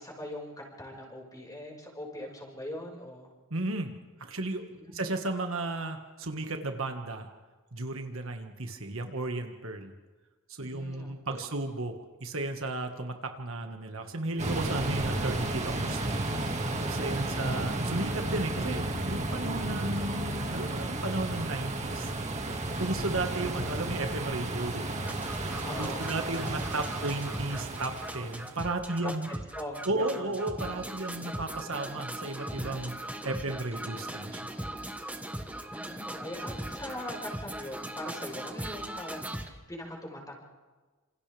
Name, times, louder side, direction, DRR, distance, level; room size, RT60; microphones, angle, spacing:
voice 1, 0.0-3.3 4.7-5.0 10.6-11.5 17.0-18.1 22.7-23.1 25.6-26.1 29.0-30.4 35.7-40.4, left 1 dB, 20° left, -1 dB, 5.5 m, -42 dB
voice 2, 3.5-3.9 4.2-4.6 4.9-7.3 7.7-9.9 10.5-16.2 16.9-22.1 22.8-25.1 25.8-29.3 29.9-32.9 33.2-34.4, right 2 dB, 70° right, 5 dB, 1.8 m, -34 dB
sound 1, 14.4-28.6, right 2 dB, 35° right, 2.1 m, -33 dB
sound 2, 25.0-39.5, right 1 dB, 5° right, 1.3 m, -39 dB
27.5 x 27.5 x 3.5 m, 1.3 s
head